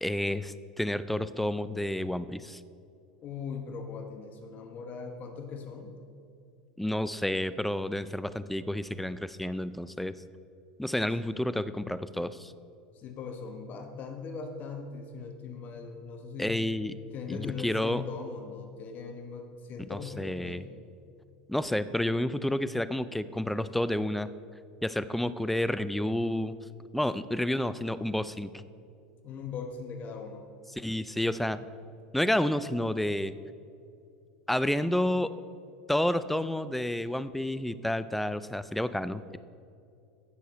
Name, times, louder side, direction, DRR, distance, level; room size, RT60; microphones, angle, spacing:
voice 1, 0.0-2.6 6.8-10.2 10.8-12.5 16.4-16.9 17.3-18.0 19.9-20.6 21.5-24.3 24.8-26.5 26.9-28.5 30.8-31.6 32.1-33.3 34.5-35.3 35.9-39.4, left 1 dB, 5° left, 15 dB, 0.4 m, -30 dB
voice 2, 3.2-5.9 12.9-16.6 17.1-20.6 29.2-30.4, left 5 dB, 40° left, 5 dB, 1.1 m, -40 dB
15.5 x 6.6 x 4.2 m, 2.5 s
hypercardioid pair, 105°, 4 cm